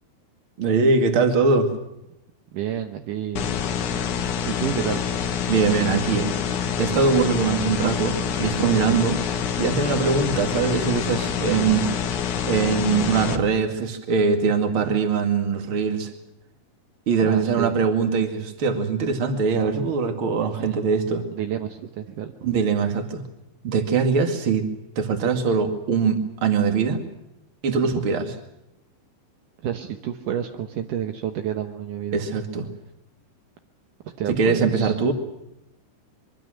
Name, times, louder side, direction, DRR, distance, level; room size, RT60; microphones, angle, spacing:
voice 1, 0.6-1.7 5.5-6.3 6.8-9.2 9.6-11.9 12.4-16.1 17.1-21.2 22.4-23.3 23.6-24.7 25.0-27.0 27.6-28.3 32.1-32.7 34.3-35.1, right 5 dB, 40° right, 6 dB, 2.1 m, -22 dB
voice 2, 2.5-3.6 4.5-5.1 17.2-17.7 20.5-20.8 21.3-22.3 27.9-28.0 29.6-32.3 34.2-34.9, right 10 dB, 80° right, 6 dB, 1.9 m, -30 dB
sound 1, 3.4-13.4, left 7 dB, 65° left, 2.0 m, -26 dB
25.0 x 23.5 x 6.5 m, 0.85 s
omnidirectional pair, 5.4 m